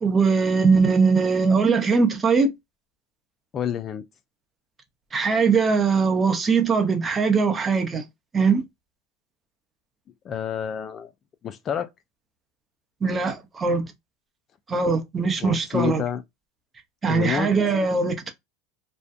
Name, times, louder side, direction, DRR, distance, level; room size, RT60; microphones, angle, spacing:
voice 1, 0.0-2.5 5.1-8.1 8.3-8.6 13.0-13.9 14.7-16.0 17.0-18.3, right 5 dB, 20° right, 0.7 m, -21 dB
voice 2, 3.5-4.0 10.2-11.1 11.4-11.9 15.4-16.2 17.1-17.5, left 9 dB, 35° left, 0.3 m, -28 dB
2.6 x 2.1 x 2.3 m
supercardioid pair, 110°, 0 cm